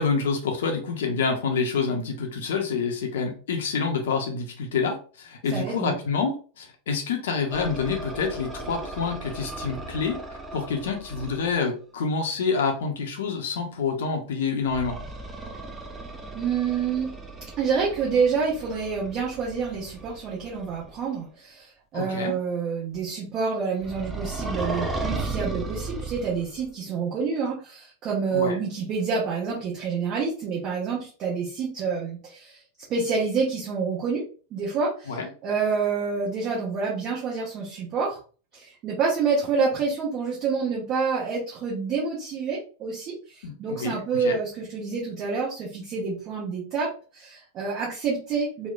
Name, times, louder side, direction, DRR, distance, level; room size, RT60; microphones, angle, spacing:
voice 1, 0.0-15.0 21.9-22.3 28.3-28.6 35.1-35.3 43.4-44.3, left 5 dB, 60° left, 3 dB, 0.5 m, -27 dB
voice 2, 5.5-6.0 16.3-17.1 17.6-32.6 32.9-34.2 34.5-38.2 38.5-48.7, right 5 dB, 35° right, -5 dB, 0.8 m, -28 dB
sound 1, 7.5-11.6 14.7-21.0 23.8-26.7, right 3 dB, 15° right, 0.4 m, -36 dB
3.0 x 2.0 x 2.3 m, 0.38 s
figure-of-eight pair, 90°, 0 cm